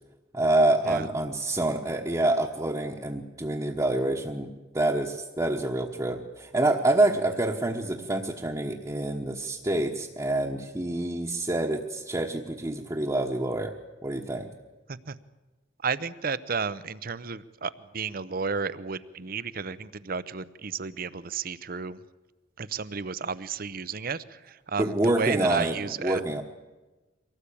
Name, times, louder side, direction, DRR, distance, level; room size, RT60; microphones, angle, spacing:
voice 1, 0.3-13.7 14.0-14.5 24.8-26.4, right 2 dB, 20° right, -1 dB, 1.2 m, -27 dB
voice 2, 15.8-22.0 22.6-26.2, right 5 dB, 50° right, 16 dB, 0.8 m, -32 dB
24.0 x 18.0 x 8.6 m, 1.2 s
head